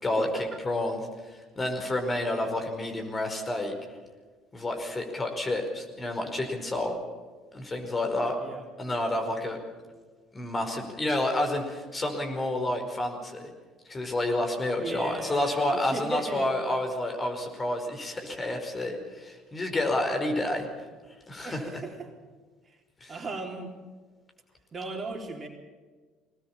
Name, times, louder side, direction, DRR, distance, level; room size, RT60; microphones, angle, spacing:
voice 1, 0.0-1.0 1.3-3.7 4.5-6.9 7.5-8.4 8.8-9.6 10.3-13.5 13.9-20.7 21.3-21.7 23.0-23.1, left 1 dB, 25° left, 4 dB, 4.9 m, -29 dB
voice 2, 14.8-16.5 21.4-22.1 22.6-22.8 23.1-23.7 24.7-25.5, right 3 dB, 35° right, 2 dB, 3.7 m, -37 dB
22.5 x 19.0 x 7.4 m, 1.4 s
hypercardioid pair, 60°, 0 cm